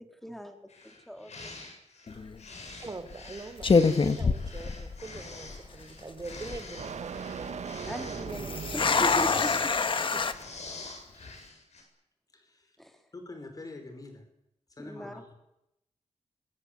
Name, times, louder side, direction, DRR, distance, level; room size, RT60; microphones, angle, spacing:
voice 1, 0.2-0.6 1.1-1.5 7.8-9.5 12.8-13.0 14.9-15.1, equal, ahead, 5 dB, 3.3 m, -38 dB
sound 1, 0.7-11.8, left 3 dB, 75° left, 7.7 m, -46 dB
sound 2, 2.1-2.4 3.1-3.3 3.6-5.2 5.5-5.6 6.2-6.6 8.3-10.3, left 4 dB, 45° left, 1.6 m, -25 dB
voice 2, 2.8-7.6 10.1-10.2 11.1-11.3, right 3 dB, 30° right, 9 dB, 3.4 m, -43 dB
sound 3, 2.9-9.9, right 6 dB, 85° right, 1.9 m, -42 dB
voice 3, 12.3-12.8 13.1-14.3 14.7-15.3, left 2 dB, 30° left, 6 dB, 5.2 m, -45 dB
25.5 x 23.0 x 8.3 m, 0.85 s
wide cardioid pair, 145°, 12 cm